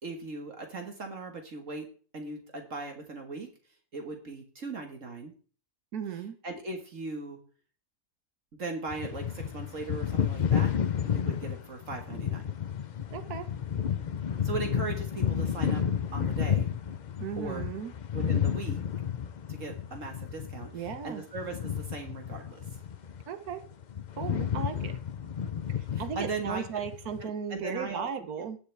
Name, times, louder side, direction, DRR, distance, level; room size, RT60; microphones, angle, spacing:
voice 1, 0.0-1.9 2.1-3.5 3.9-5.3 6.4-7.4 8.5-10.7 11.0-12.5 14.4-15.8 16.1-16.7 17.4-17.7 18.1-18.8 19.5-22.6 25.9-26.8 27.2-28.1 28.4-28.5, right 3 dB, 60° right, 4 dB, 1.9 m, -38 dB
voice 2, 5.9-6.4 13.1-13.5 17.2-17.9 20.7-21.2 23.3-23.6 24.2-24.9 25.8-28.6, right 7 dB, 85° right, 8 dB, 1.6 m, -36 dB
sound 1, 8.9-23.2 23.5-27.2, left 8 dB, 50° left, 0.5 m, -31 dB
19.0 x 6.9 x 3.4 m, 0.40 s
omnidirectional pair, 1.6 m